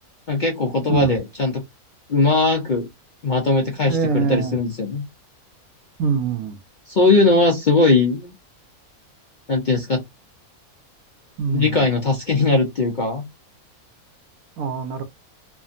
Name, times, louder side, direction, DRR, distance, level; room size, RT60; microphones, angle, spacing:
voice 1, 0.3-1.6 2.1-2.9 3.2-5.0 6.9-8.3 9.5-10.0 11.5-13.2, left 3 dB, 50° left, 0.5 m, -19 dB
voice 2, 3.9-4.6 6.0-6.6 11.4-11.8 14.6-15.0, right 5 dB, 80° right, 1.1 m, -23 dB
3.3 x 2.2 x 2.4 m
omnidirectional pair, 1.6 m